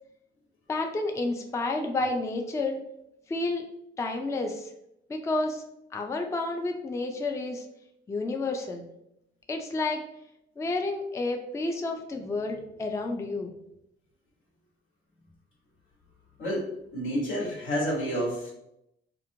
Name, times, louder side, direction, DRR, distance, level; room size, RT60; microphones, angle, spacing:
voice 1, 0.7-2.8 3.3-3.7 4.0-4.7 5.1-5.6 5.9-7.6 8.1-8.8 9.5-10.0 10.6-13.5, left 2 dB, 15° left, 3 dB, 0.3 m, -30 dB
voice 2, 16.4-18.5, equal, 80° left, -4 dB, 1.4 m, -29 dB
2.9 x 2.4 x 2.6 m, 0.81 s
cardioid pair, 90°, 20 cm